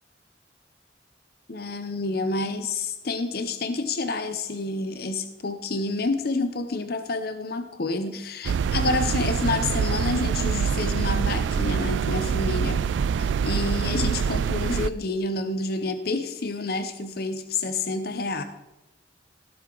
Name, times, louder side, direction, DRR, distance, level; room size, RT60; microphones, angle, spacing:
voice 1, 1.5-12.8 13.2-18.4, left 3 dB, 55° left, 9 dB, 0.7 m, -28 dB
sound 1, 8.4-14.9, right 6 dB, 80° right, 0.3 m, -25 dB
17.5 x 7.9 x 3.8 m, 1.0 s
head